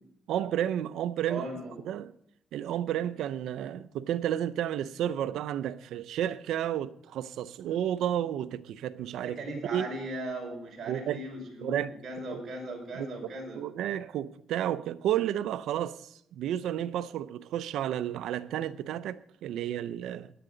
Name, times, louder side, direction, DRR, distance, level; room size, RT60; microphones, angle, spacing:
voice 1, 0.3-1.4 1.8-2.1 2.5-9.4 9.7-9.9 10.9-11.2 11.6-11.9 12.3-12.4 12.9-13.1 13.5-20.3, right 11 dB, 80° right, 0.6 m, -31 dB
voice 2, 1.3-1.7 9.2-13.6, right 1 dB, 50° right, 5.2 m, -38 dB
17.0 x 11.0 x 4.0 m
cardioid pair, 90°, 0 cm